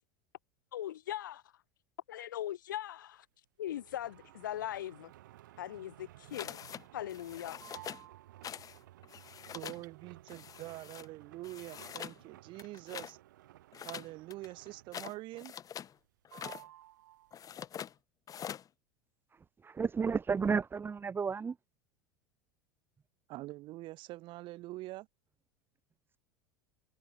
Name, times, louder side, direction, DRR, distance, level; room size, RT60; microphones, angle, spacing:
voice 1, 0.7-1.4 2.1-3.3 3.6-5.1 5.6-6.6 6.9-7.6, left 12 dB, 75° left, 2.1 m, -40 dB
sound 1, 3.7-15.2 15.5-16.1 16.3-17.6, right 15 dB, 70° right, 5.4 m, -56 dB
sound 2, 6.3-6.8 7.1-8.0 8.4-8.8 9.0-9.8 10.3-11.1 11.4-12.2 12.5-13.1 13.7-15.9 16.2-16.6 17.3-17.9 18.3-18.7, left 9 dB, 35° left, 5.6 m, -45 dB
voice 2, 9.5-13.2 13.8-15.5 23.3-25.1, right 18 dB, 50° right, 5.2 m, -45 dB
voice 3, 19.6-21.5, right 5 dB, 20° right, 1.1 m, -32 dB
hypercardioid pair, 80°, 10 cm